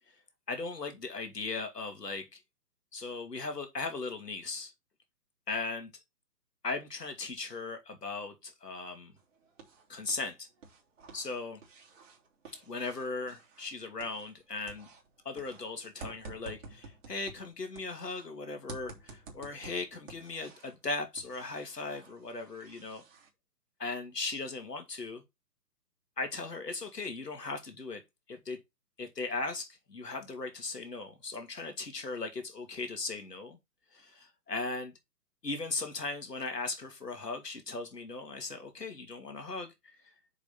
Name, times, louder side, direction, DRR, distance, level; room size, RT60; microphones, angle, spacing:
voice 1, 0.5-2.4 2.9-4.7 5.5-5.9 6.6-9.1 9.9-10.5 11.1-11.6 12.5-14.9 15.2-23.0 23.8-25.2 26.2-28.0 28.3-28.6 29.0-33.6 33.9-34.9 35.4-40.0, left 3 dB, 75° left, 2.7 m, -38 dB
sound 1, 9.2-10.3 10.6-14.4 14.7-18.3 18.7-20.8 21.2-23.3, right 3 dB, 50° right, 3.1 m, -51 dB
6.9 x 5.8 x 4.3 m
figure-of-eight pair, 135°, 48 cm